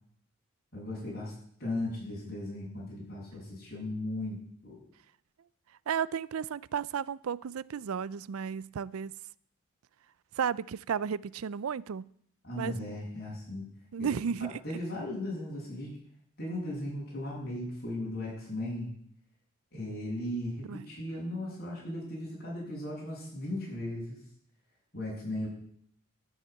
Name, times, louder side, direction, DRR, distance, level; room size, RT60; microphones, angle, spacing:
voice 1, 0.7-1.3 1.6-4.4 4.6-4.8 12.4-13.7 14.0-14.1 14.4-16.0 16.4-18.9 19.7-24.2 24.9-25.5, left 1 dB, 45° left, 7.7 m, -37 dB
voice 2, 5.9-9.1 10.4-12.1 12.5-12.8 13.9-14.6 20.7-20.9, right 7 dB, 80° right, 0.4 m, -33 dB
12.5 x 7.3 x 9.1 m
head